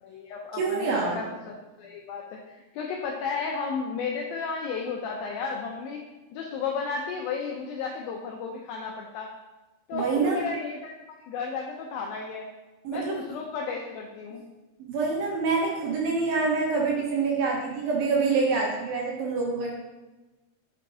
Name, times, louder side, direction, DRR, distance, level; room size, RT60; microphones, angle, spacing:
voice 1, 0.0-6.0 6.3-9.3 9.9-11.0 11.3-12.5 12.9-14.4, left 5 dB, 90° left, 0 dB, 2.1 m, -33 dB
voice 2, 0.5-1.2 9.9-10.5 12.8-13.2 14.8-19.7, right 4 dB, 70° right, -3 dB, 2.5 m, -26 dB
8.2 x 5.4 x 2.7 m, 1.1 s
omnidirectional pair, 4.9 m